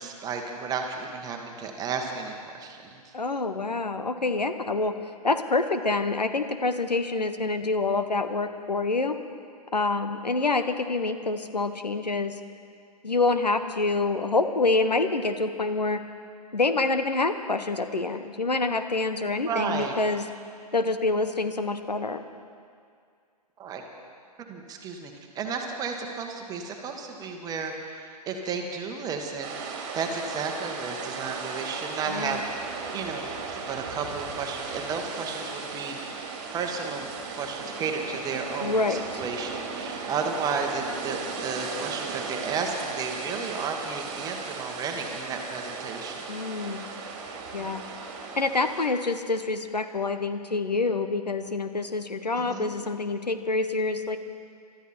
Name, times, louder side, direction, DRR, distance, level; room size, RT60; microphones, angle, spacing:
voice 1, 0.0-3.1 19.4-20.0 23.6-23.8 24.5-32.4 32.9-46.2 47.6-47.9 52.3-52.8, right 5 dB, 20° right, 3 dB, 1.5 m, -33 dB
voice 2, 3.1-4.9 5.2-9.2 9.7-12.3 13.0-16.0 16.5-20.3 20.7-22.2 32.1-32.4 38.6-39.2 46.3-46.8 47.5-47.8 48.4-54.2, left 3 dB, 85° left, 9 dB, 1.0 m, -26 dB
sound 1, 29.4-48.9, right 4 dB, 35° right, 2.2 m, -36 dB
22.5 x 13.0 x 4.4 m, 2.2 s
figure-of-eight pair, 120°, 21 cm